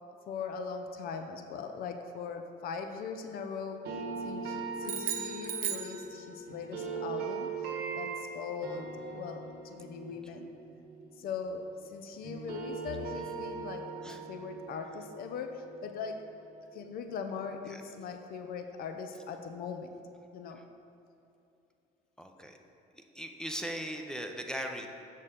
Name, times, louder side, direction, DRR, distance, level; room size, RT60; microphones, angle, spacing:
voice 1, 0.3-7.7 7.9-10.5 11.2-16.4 16.7-19.9 20.3-20.6, left 5 dB, 60° left, 6 dB, 0.5 m, -40 dB
sound 1, 3.8-11.9 12.2-17.2, right 4 dB, 75° right, 1.2 m, -41 dB
sound 2, 4.8-6.6, right 9 dB, 55° right, 0.6 m, -36 dB
voice 2, 22.2-22.6 22.9-24.9, equal, 5° left, 3 dB, 0.5 m, -39 dB
6.6 x 6.4 x 3.7 m, 2.7 s
cardioid pair, 110°, 17 cm